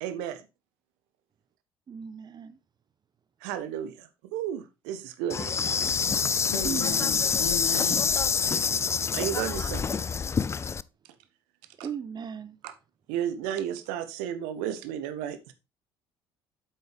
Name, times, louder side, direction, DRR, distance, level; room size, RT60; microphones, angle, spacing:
voice 1, 0.0-0.5 3.4-6.0 9.1-10.0 11.8-11.9 12.6-12.7 13.1-15.5, right 10 dB, 60° right, 0.9 m, -33 dB
voice 2, 1.9-2.6 6.6-7.3 11.8-12.6, right 7 dB, 30° right, 0.8 m, -37 dB
Insect, 5.3-10.8, left 6 dB, 20° left, 0.3 m, -26 dB
voice 3, 6.5-8.1, left 6 dB, 70° left, 1.7 m, -35 dB
8.9 x 7.9 x 3.4 m
figure-of-eight pair, 50°, 13 cm